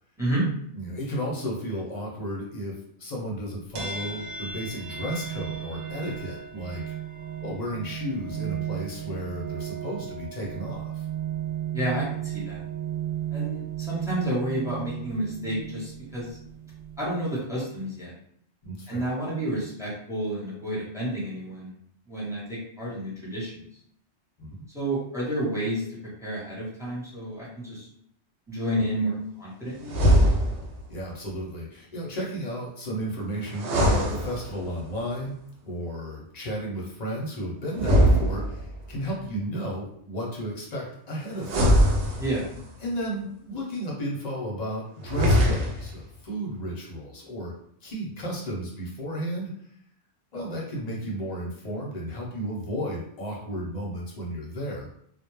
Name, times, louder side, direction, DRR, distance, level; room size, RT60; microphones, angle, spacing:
voice 1, 0.8-6.9 7.4-11.0 18.6-19.1 24.4-24.6 30.9-35.4 35.7-41.8 42.8-47.5 47.8-49.5 50.3-54.9, equal, 45° left, -2 dB, 0.7 m, -33 dB
sound 1, 3.8-17.3, right 9 dB, 60° right, 0.5 m, -34 dB
voice 2, 11.7-12.6 13.3-16.4 17.0-18.1 18.9-21.7 22.1-23.5 24.7-27.9 28.5-30.0 42.2-42.4, right 1 dB, 5° right, -6 dB, 0.7 m, -30 dB
sound 2, 29.8-30.8 33.5-34.8 37.7-38.9 41.4-42.7 45.0-46.0, equal, 80° right, 0.9 m, -22 dB
2.2 x 2.1 x 3.0 m, 0.66 s
omnidirectional pair, 1.2 m